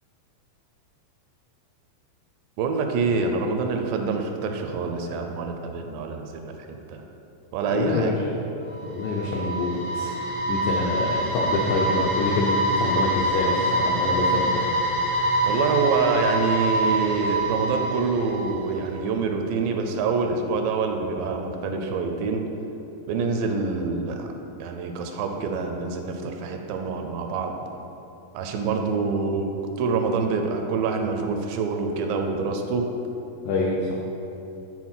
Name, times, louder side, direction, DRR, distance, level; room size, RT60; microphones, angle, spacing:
voice 1, 2.6-7.0 7.5-8.1 15.4-22.5 23.1-24.3 24.6-27.6 28.3-29.5 29.8-32.9, right 4 dB, 80° right, 4 dB, 2.2 m, -26 dB
voice 2, 7.7-8.4 8.8-10.2 10.5-14.7 33.4-34.0, left 3 dB, 85° left, -3 dB, 1.7 m, -26 dB
sound 1, 8.7-18.8, right 1 dB, 45° left, 1.4 m, -25 dB
6.2 x 4.4 x 5.7 m, 3.0 s
omnidirectional pair, 4.1 m